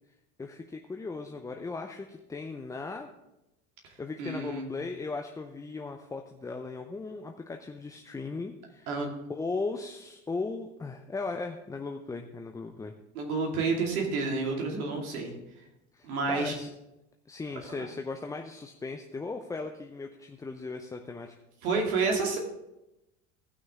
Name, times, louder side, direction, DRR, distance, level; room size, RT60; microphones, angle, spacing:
voice 1, 0.4-3.1 4.0-8.9 9.3-13.0 15.9-16.7 17.3-21.3, left 3 dB, 10° left, 4 dB, 0.4 m, -37 dB
voice 2, 4.2-4.6 8.9-9.1 13.1-15.3 16.0-16.5 17.8-17.9 21.6-22.4, right 4 dB, 70° right, 0 dB, 2.5 m, -29 dB
17.0 x 6.2 x 3.6 m, 0.93 s
hypercardioid pair, 75°, 44 cm